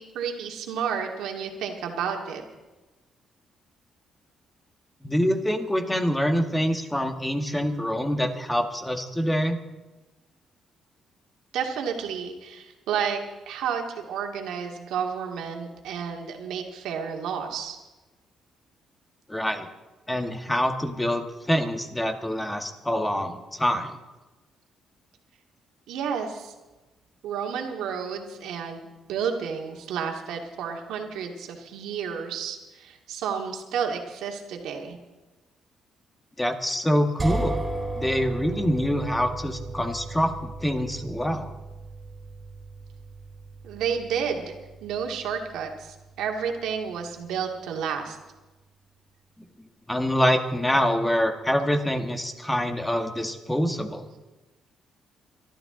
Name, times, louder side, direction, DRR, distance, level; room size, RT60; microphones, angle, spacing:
voice 1, 0.0-2.4 11.5-13.2 13.5-17.8 25.9-26.5 27.2-35.0 43.6-44.5 44.8-48.2, right 7 dB, 85° right, 2 dB, 2.3 m, -31 dB
voice 2, 5.0-9.6 19.3-19.7 20.1-24.0 36.4-37.6 38.0-41.5 49.9-54.1, equal, 10° left, 5 dB, 1.9 m, -25 dB
sound 1, 37.2-47.0, right 2 dB, 25° right, 3.7 m, -36 dB
24.0 x 12.5 x 3.9 m, 1.1 s
cardioid pair, 90°, 0 cm